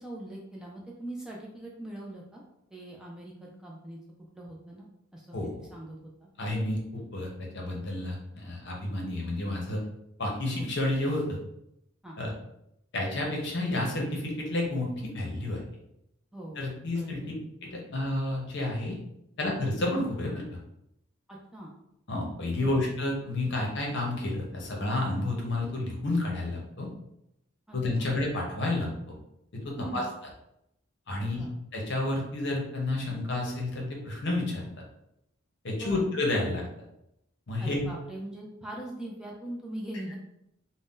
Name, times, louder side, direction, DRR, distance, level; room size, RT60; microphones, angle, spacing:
voice 1, 0.0-2.4 2.7-4.0 4.3-6.3 10.6-10.7 12.0-12.2 16.3-16.6 16.9-17.3 21.3-21.7 22.6-22.8 27.7-28.1 29.8-30.0 31.4-31.5 35.8-36.0 37.6-40.2, right 1 dB, 5° right, -3 dB, 0.3 m, -41 dB
voice 2, 6.4-9.8 10.2-11.4 12.2-12.3 12.9-15.6 16.6-17.2 17.6-19.0 19.4-20.4 22.1-26.9 27.7-29.1 29.5-30.0 31.1-31.4 31.7-34.6 35.6-36.6 37.5-37.8, left 2 dB, 55° left, -1 dB, 0.7 m, -30 dB
2.6 x 2.1 x 3.6 m, 0.81 s
head